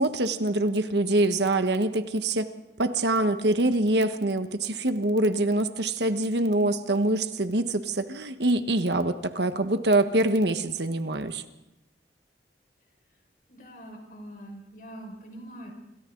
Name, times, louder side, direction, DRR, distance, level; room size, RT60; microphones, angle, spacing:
voice 1, 0.0-2.5 2.8-11.4, right 1 dB, 70° right, 8 dB, 1.4 m, -25 dB
voice 2, 13.5-15.7, right 1 dB, 50° left, 2 dB, 5.5 m, -43 dB
27.0 x 26.5 x 3.9 m, 0.97 s
head